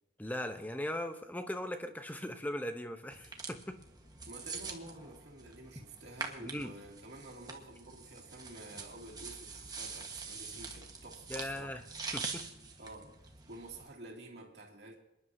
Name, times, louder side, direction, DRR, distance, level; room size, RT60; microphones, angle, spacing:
voice 1, 0.2-3.8 6.4-6.7 11.3-11.8 12.1-12.4, left 1 dB, 10° left, 0.9 m, -39 dB
sound 1, 3.1-13.9, right 4 dB, 20° right, 1.4 m, -45 dB
voice 2, 4.3-11.8 12.8-15.0, right 2 dB, 55° right, 2.7 m, -50 dB
27.5 x 11.0 x 2.8 m
head